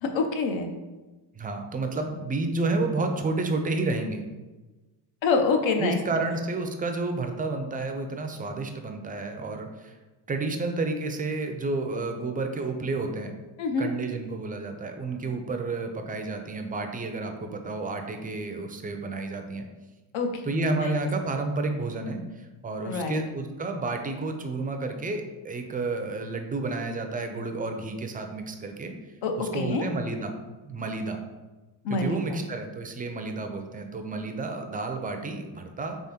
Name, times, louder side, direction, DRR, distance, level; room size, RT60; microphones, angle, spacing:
voice 1, 0.0-0.7 5.2-6.3 13.6-13.9 20.1-21.1 22.8-23.2 29.2-29.9 31.8-32.4, left 4 dB, 70° left, 5 dB, 0.8 m, -27 dB
voice 2, 1.3-4.2 5.8-10.0 10.3-13.3 13.8-19.6 20.4-28.9 29.4-30.3 30.6-31.2 31.9-36.0, right 3 dB, 20° right, 5 dB, 0.4 m, -31 dB
3.6 x 3.4 x 4.2 m, 1.2 s
cardioid pair, 125°, 48 cm